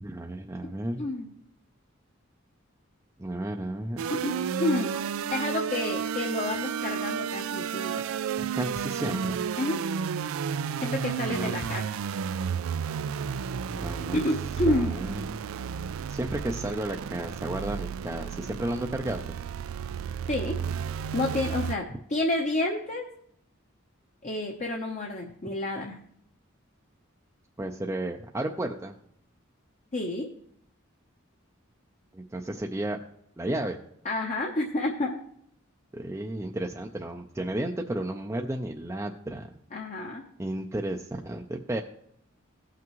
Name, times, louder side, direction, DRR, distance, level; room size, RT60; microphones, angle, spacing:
voice 1, 0.0-1.0 3.2-4.0 8.4-9.4 11.3-11.6 13.7-14.2 14.7-15.3 16.1-19.3 27.6-28.9 32.1-33.0 33.4-33.8 35.9-39.5 40.4-41.8, right 1 dB, 15° right, 2 dB, 0.4 m, -33 dB
sound 1, 4.0-21.7, right 7 dB, 85° right, 0.4 m, -32 dB
voice 2, 4.1-4.9 5.3-7.9 9.6-9.8 10.8-11.8 14.1-15.0 20.3-20.6 21.1-23.1 24.2-26.0 29.9-30.3 34.0-35.2 39.7-40.3, left 1 dB, 35° left, 1 dB, 0.8 m, -29 dB
17.0 x 6.0 x 3.0 m, 0.70 s
head